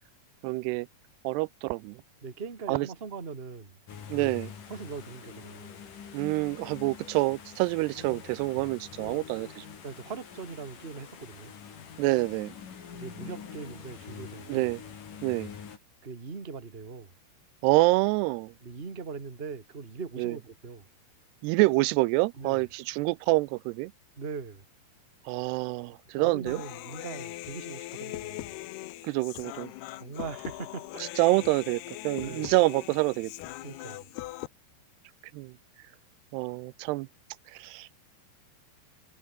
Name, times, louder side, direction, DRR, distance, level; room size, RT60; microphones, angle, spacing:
voice 1, 0.4-0.9 1.2-2.0 2.7-2.9 4.1-4.5 6.1-9.7 12.0-12.5 14.5-14.8 15.2-15.5 17.6-18.5 20.2-20.4 21.4-23.9 25.3-26.6 29.0-29.7 31.0-33.3 35.3-35.5 36.3-37.1 37.5-38.0, right 22 dB, 90° right, 2.7 m, -27 dB
voice 2, 2.2-3.8 4.7-5.8 9.8-11.5 12.9-14.7 16.0-17.1 18.6-20.9 22.4-22.6 24.2-24.6 26.2-28.6 30.0-31.0 32.2-32.5 33.6-34.1, right 5 dB, 25° right, 1.5 m, -41 dB
sound 1, 3.9-15.8, left 7 dB, 55° left, 4.6 m, -45 dB
Human voice, 26.5-34.5, left 17 dB, 85° left, 2.8 m, -41 dB
omnidirectional pair, 4.7 m